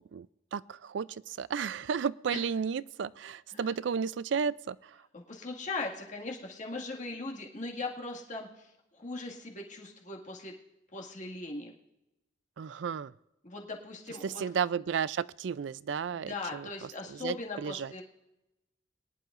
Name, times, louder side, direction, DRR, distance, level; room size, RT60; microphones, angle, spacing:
voice 1, 0.5-4.8 12.6-13.1 14.2-17.9, right 6 dB, 80° right, 19 dB, 0.4 m, -33 dB
voice 2, 5.1-10.5 10.9-11.7 13.4-14.4 16.1-18.0, left 3 dB, 45° left, 0 dB, 2.0 m, -39 dB
22.5 x 11.0 x 2.5 m, 0.92 s
head